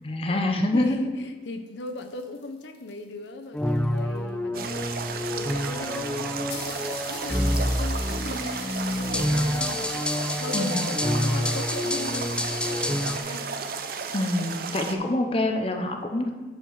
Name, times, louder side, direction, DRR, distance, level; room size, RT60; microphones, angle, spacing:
voice 1, 0.0-1.1 10.5-10.9 14.1-16.3, left 1 dB, 30° left, 4 dB, 0.7 m, -26 dB
voice 2, 0.7-13.6, left 2 dB, 85° left, 7 dB, 0.7 m, -38 dB
sound 1, 1.5-4.3 5.2-5.3 5.5-5.6 5.9-6.0 6.5-14.7, left 4 dB, 65° left, 1.4 m, -45 dB
sound 2, 3.5-13.2, left 1 dB, 5° left, 0.3 m, -28 dB
sound 3, 4.5-15.0, right 5 dB, 55° right, 0.6 m, -34 dB
7.9 x 4.6 x 6.5 m, 1.2 s
head